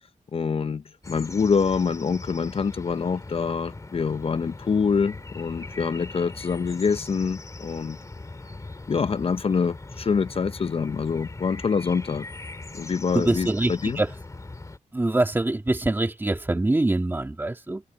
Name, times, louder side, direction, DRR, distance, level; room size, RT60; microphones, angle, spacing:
voice 1, 0.3-8.0 8.9-12.3 12.7-14.0, left 5 dB, 45° left, 0.7 m, -25 dB
sound 1, 1.0-14.8, left 2 dB, 25° left, 2.3 m, -40 dB
voice 2, 13.1-14.1 14.9-17.8, right 2 dB, 15° right, 1.9 m, -24 dB
wide cardioid pair, 110°, 14 cm